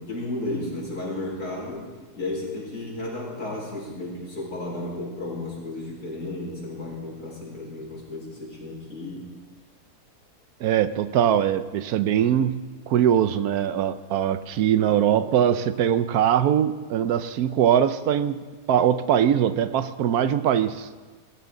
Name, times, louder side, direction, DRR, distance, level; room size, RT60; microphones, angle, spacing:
voice 1, 0.0-9.3, left 2 dB, 75° left, -4 dB, 5.3 m, -33 dB
voice 2, 10.6-12.6 12.9-20.9, right 9 dB, 75° right, 13 dB, 1.1 m, -22 dB
21.5 x 14.5 x 3.8 m, 1.4 s
omnidirectional pair, 1.7 m